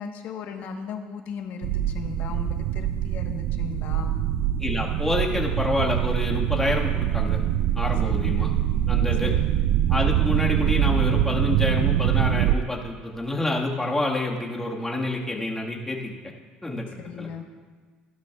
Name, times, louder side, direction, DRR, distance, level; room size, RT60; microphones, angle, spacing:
voice 1, 0.0-4.1 8.0-8.3 9.2-9.4 16.8-17.4, left 6 dB, 65° left, 4 dB, 1.2 m, -37 dB
sound 1, 1.6-12.5, right 11 dB, 75° right, 0.4 m, -24 dB
voice 2, 4.6-7.4 7.7-8.5 8.9-9.3 9.9-16.1 16.6-16.8 17.2-17.3, left 2 dB, 10° left, -2 dB, 1.6 m, -27 dB
15.5 x 12.0 x 2.4 m, 1.5 s
cardioid pair, 105°, 3 cm